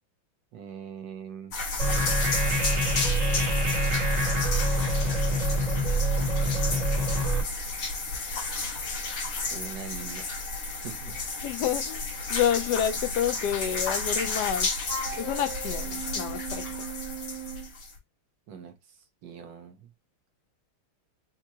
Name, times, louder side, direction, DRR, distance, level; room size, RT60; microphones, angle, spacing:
voice 1, 0.5-1.5 9.5-10.5 10.8-11.2 18.5-19.9, right 7 dB, 65° right, 1.5 m, -42 dB
sound 1, 1.5-18.0, left 3 dB, 85° left, 2.7 m, -32 dB
sound 2, 1.8-7.4, right 1 dB, 40° right, 0.5 m, -25 dB
voice 2, 11.4-14.7 15.1-16.6, left 10 dB, 65° left, 1.1 m, -29 dB
Wind instrument woodwind instrument, 14.8-17.7, right 6 dB, 85° right, 1.6 m, -38 dB
6.0 x 2.9 x 2.8 m
omnidirectional pair, 2.3 m